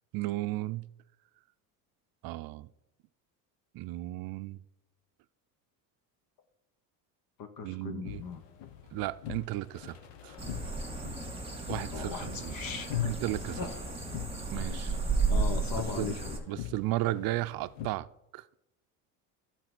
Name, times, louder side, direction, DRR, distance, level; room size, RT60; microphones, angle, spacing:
voice 1, 0.1-0.9 2.2-2.7 3.7-4.6 7.6-8.2 8.9-10.0 10.2-10.4 11.7-12.5 13.0-13.6 14.5-15.0 16.0-16.2 16.5-18.1 18.3-18.5, right 17 dB, 60° right, 0.5 m, -34 dB
voice 2, 7.4-8.4 11.9-13.1 13.6-13.7 15.3-16.4, left 7 dB, 55° left, 1.1 m, -37 dB
sound 1, 8.0-17.9, left 11 dB, 80° left, 1.2 m, -45 dB
sound 2, 10.4-16.4, right 3 dB, 15° right, 2.0 m, -33 dB
11.5 x 4.2 x 6.0 m
supercardioid pair, 110°, 42 cm